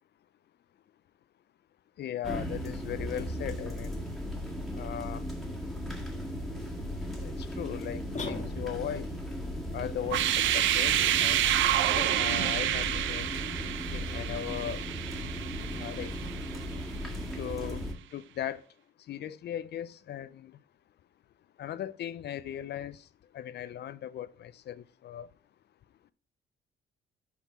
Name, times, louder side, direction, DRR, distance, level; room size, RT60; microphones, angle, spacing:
voice 1, 2.0-4.0 4.7-5.3 6.8-6.9 7.2-8.0 8.3-9.1 9.7-11.6 11.9-13.3 13.9-14.8 15.7-16.1 17.4-17.8 18.1-18.6 19.1-20.5 21.6-23.0 23.3-25.3, left 10 dB, 60° left, 0.4 m, -38 dB
sound 1, 2.2-17.9, equal, ahead, 1.6 m, -37 dB
sound 2, 8.1-9.1, left 3 dB, 40° left, 1.5 m, -38 dB
sound 3, 10.0-16.9, right 12 dB, 75° right, 0.5 m, -29 dB
5.5 x 4.6 x 5.7 m
cardioid pair, 90°, 20 cm